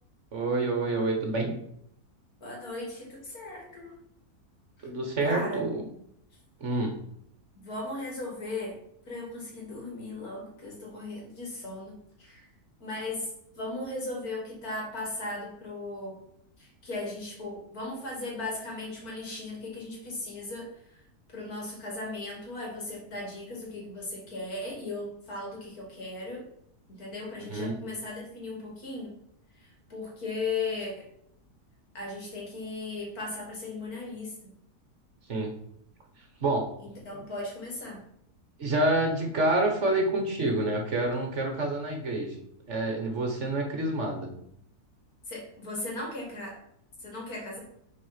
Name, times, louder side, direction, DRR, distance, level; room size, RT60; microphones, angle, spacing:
voice 1, 0.3-1.5 4.8-5.8 6.6-6.9 27.4-27.7 35.3-35.5 36.4-36.6 38.6-42.3 42.7-44.3, right 2 dB, 50° right, 2 dB, 1.6 m, -27 dB
voice 2, 2.4-4.0 5.2-5.6 7.6-8.8 9.1-12.4 12.8-13.3 13.6-16.2 16.6-20.7 21.3-26.5 26.9-29.1 29.9-31.1 31.9-34.3 36.8-38.0 45.3-46.6 47.0-47.6, left 2 dB, 70° left, -1 dB, 2.6 m, -37 dB
6.3 x 4.3 x 5.7 m, 0.71 s
omnidirectional pair, 1.6 m